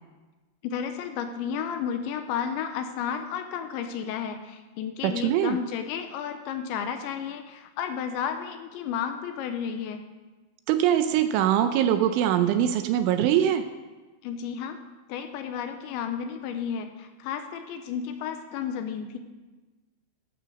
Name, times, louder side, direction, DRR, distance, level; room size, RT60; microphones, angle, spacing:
voice 1, 0.6-10.1 14.2-14.8 15.1-19.2, left 7 dB, 80° left, 7 dB, 2.8 m, -32 dB
voice 2, 5.0-5.6 10.7-13.6, right 10 dB, 80° right, 9 dB, 3.0 m, -22 dB
13.5 x 12.0 x 6.4 m, 1.2 s
omnidirectional pair, 5.8 m